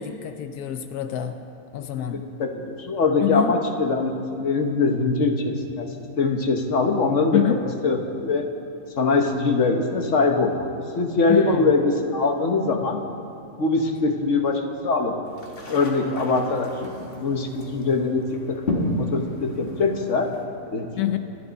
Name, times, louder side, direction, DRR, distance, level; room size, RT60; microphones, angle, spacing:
voice 1, 0.0-1.4 1.7-2.3 3.2-3.5 7.3-7.6 11.3-11.7 21.0-21.2, left 10 dB, 85° left, 8 dB, 1.2 m, -26 dB
voice 2, 2.0-5.9 6.2-7.4 7.8-8.4 9.0-10.6 10.9-13.0 13.6-15.2 15.7-18.6 18.9-20.3 20.7-20.9, left 3 dB, 55° left, 4 dB, 1.4 m, -22 dB
sound 1, 15.2-20.5, left 1 dB, 40° left, 1.9 m, -32 dB
25.5 x 10.5 x 4.1 m, 2.7 s
omnidirectional pair, 1.6 m